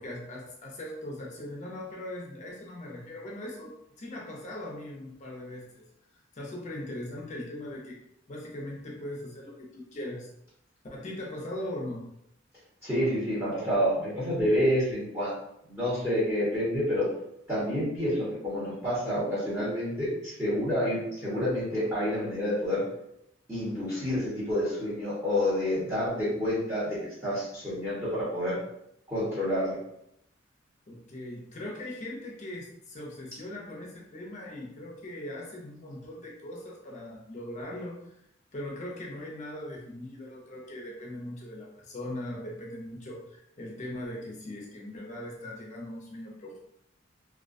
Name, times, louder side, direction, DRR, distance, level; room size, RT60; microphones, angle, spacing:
voice 1, 0.0-5.9 6.3-8.0 8.3-10.3 10.9-12.1 18.6-19.0 26.3-26.4 30.9-38.1 38.5-46.6, left 1 dB, 40° left, -2 dB, 0.5 m, -40 dB
voice 2, 12.8-15.3 15.7-17.1 17.5-22.8 23.5-28.6 29.1-29.8, equal, 15° right, -10 dB, 0.9 m, -28 dB
2.3 x 2.2 x 2.5 m, 0.78 s
head